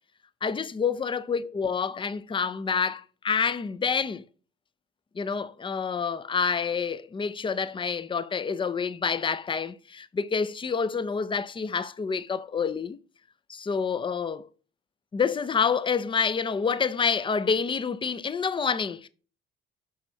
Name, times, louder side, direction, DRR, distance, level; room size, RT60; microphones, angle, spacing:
voice 1, 0.4-4.2 5.2-13.0 13.5-14.5 15.1-19.1, left 6 dB, 15° left, 0.4 m, -28 dB
6.2 x 5.9 x 2.7 m
figure-of-eight pair, 45°, 37 cm